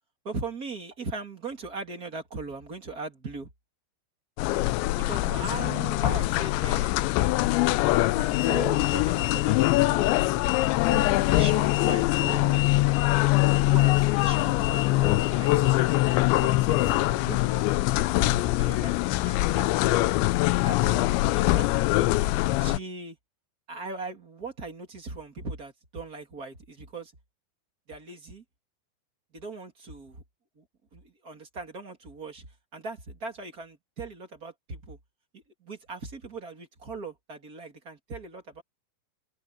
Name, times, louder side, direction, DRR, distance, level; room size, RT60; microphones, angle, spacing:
voice 1, 0.2-3.5 5.0-7.0 7.8-10.2 10.8-13.0 13.7-15.9 16.4-20.0 20.6-21.7 22.6-23.2 23.7-27.1 27.9-28.4 29.3-30.2 30.9-32.5 32.7-35.0 35.3-38.6, right 3 dB, 25° right, 2.0 m, -39 dB
sound 1, 4.4-22.8, left 18 dB, 80° left, 2.7 m, -23 dB
omnidirectional pair, 5.9 m